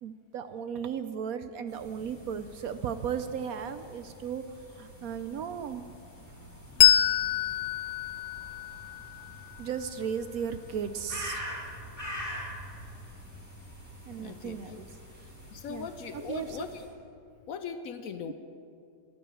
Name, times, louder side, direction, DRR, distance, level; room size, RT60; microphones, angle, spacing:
voice 1, 0.0-5.8 9.6-11.4 14.0-14.9 15.2-15.3 15.7-15.9 16.1-16.6, right 7 dB, 70° right, 11 dB, 0.9 m, -36 dB
sound 1, 1.7-16.9, equal, 10° right, 3.6 m, -45 dB
Bell, 6.8-9.9, left 11 dB, 80° left, 1.3 m, -26 dB
voice 2, 14.1-14.8 15.5-16.9 17.5-18.3, left 7 dB, 65° left, 9 dB, 1.0 m, -39 dB
11.0 x 11.0 x 9.0 m, 2.5 s
omnidirectional pair, 1.8 m